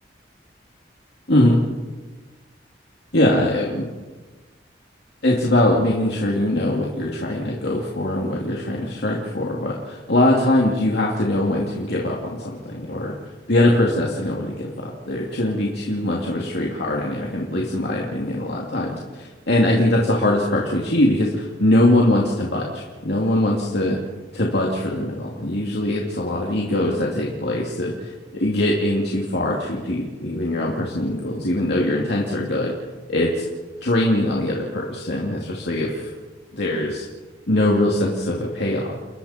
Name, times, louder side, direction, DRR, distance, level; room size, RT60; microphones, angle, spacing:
voice 1, 3.1-3.8 5.2-13.1 13.5-24.0 24.3-32.7 33.1-33.4 33.8-36.1 36.5-37.0 37.5-39.0, left 1 dB, 60° left, -2 dB, 2.7 m, -22 dB
29.5 x 21.5 x 4.4 m, 1.3 s
head